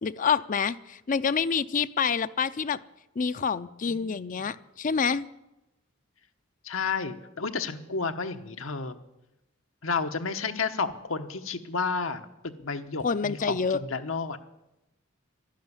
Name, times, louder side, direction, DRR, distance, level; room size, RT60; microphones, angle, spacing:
voice 1, 0.0-2.8 3.2-5.2 13.0-13.8, left 6 dB, 40° left, 14 dB, 0.5 m, -27 dB
voice 2, 3.9-4.3 6.6-9.0 9.8-14.4, left 4 dB, 85° left, 7 dB, 1.1 m, -31 dB
12.0 x 11.5 x 9.6 m, 0.93 s
head